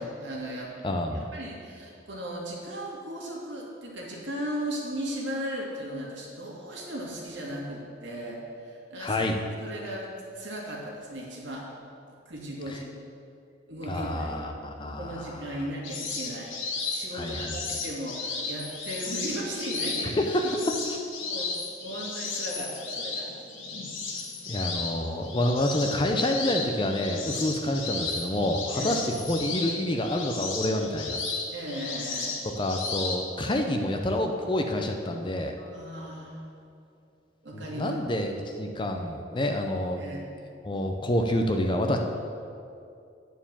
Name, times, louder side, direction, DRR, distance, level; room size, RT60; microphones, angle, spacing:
voice 1, 0.0-0.8 1.1-9.3 9.6-11.7 12.3-12.9 13.7-14.3 15.0-16.6 16.9-20.2 20.4-20.5 21.2-21.5 21.8-23.3 28.7-29.0 31.5-32.4 35.6-36.5 37.4-38.0 40.0-40.3, right 1 dB, 70° right, -3 dB, 2.0 m, -36 dB
voice 2, 0.8-1.3 9.0-9.4 12.7-12.8 13.9-15.5 17.1-17.6 20.1-20.6 24.5-31.2 32.6-35.5 37.5-40.0 40.6-42.0, left 1 dB, 25° left, 4 dB, 0.5 m, -28 dB
sound 1, 15.8-33.2, left 4 dB, 85° left, 1.2 m, -34 dB
9.3 x 4.6 x 7.2 m, 2.5 s
head